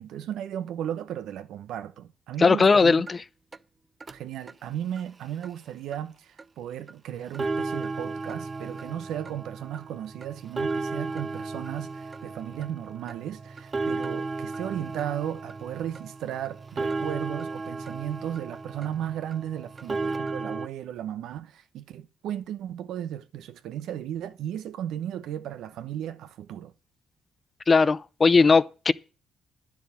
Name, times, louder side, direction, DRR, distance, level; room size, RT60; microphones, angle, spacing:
voice 1, 0.0-3.0 4.1-26.7, right 10 dB, 80° right, 0.9 m, -35 dB
voice 2, 2.4-3.2 27.7-28.9, left 4 dB, 35° left, 0.5 m, -19 dB
sound 1, 3.1-3.2 3.5-3.6 4.0-4.1 4.5-4.6 5.0-5.1 5.4-5.5 5.9-6.0 6.4-6.5 6.9-7.0 7.3-20.7, right 3 dB, 30° right, 0.5 m, -34 dB
10.5 x 7.2 x 7.1 m
cardioid pair, 90°, 0 cm